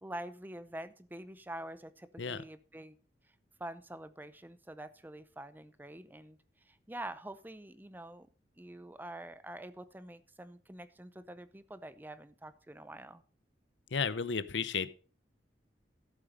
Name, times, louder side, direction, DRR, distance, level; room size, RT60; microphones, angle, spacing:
voice 1, 0.0-3.0 3.6-6.4 6.7-8.3 8.6-13.2, right 1 dB, 10° right, 14 dB, 0.6 m, -46 dB
voice 2, 13.9-14.9, left 5 dB, 90° left, 15 dB, 0.7 m, -33 dB
13.0 x 7.3 x 5.0 m, 0.39 s
head